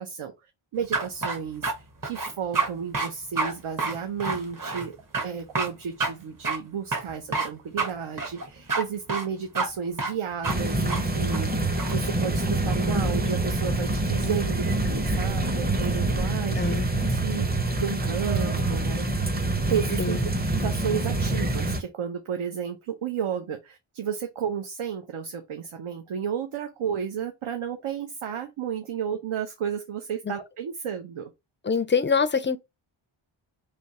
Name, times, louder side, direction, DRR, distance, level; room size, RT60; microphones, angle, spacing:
voice 1, 0.0-5.0 5.2-11.5 11.9-19.1 19.7-31.3, right 7 dB, 75° right, 0.8 m, -32 dB
sound 1, 0.9-1.7 2.0-2.7 2.9-3.1 3.4-3.5 3.8-4.9 5.1-5.3 5.5-5.7 6.0-6.1 6.4-6.6 6.9-7.5 7.8-7.9 8.2-8.8 9.1-9.3 9.5-9.7 10.0-10.1 10.4-10.6 10.9-11.0 11.3-12.0, right 4 dB, 40° right, 1.2 m, -28 dB
sound 2, 10.4-21.8, right 2 dB, 20° right, 0.7 m, -26 dB
voice 2, 16.5-16.9 20.0-20.2 31.6-32.6, left 5 dB, 25° left, 0.3 m, -24 dB
3.4 x 2.7 x 4.1 m
wide cardioid pair, 85°, 50 cm